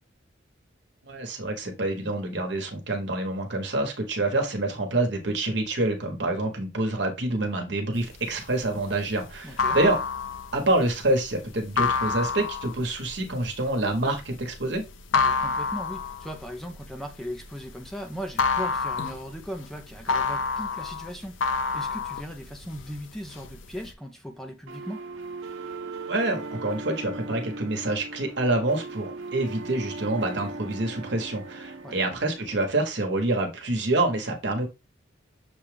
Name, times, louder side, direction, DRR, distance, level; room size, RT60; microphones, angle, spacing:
voice 1, 1.0-10.0 10.5-14.8 26.1-34.7, right 2 dB, 60° right, 1.2 m, -27 dB
sound 1, 8.1-17.9 18.2-22.9 23.3-23.9, left 4 dB, 80° left, 0.5 m, -28 dB
voice 2, 9.4-9.8 15.1-25.0 31.8-32.0, equal, ahead, 0.5 m, -38 dB
sound 2, 24.7-32.7, right 3 dB, 80° right, 0.7 m, -38 dB
6.8 x 2.3 x 3.3 m
head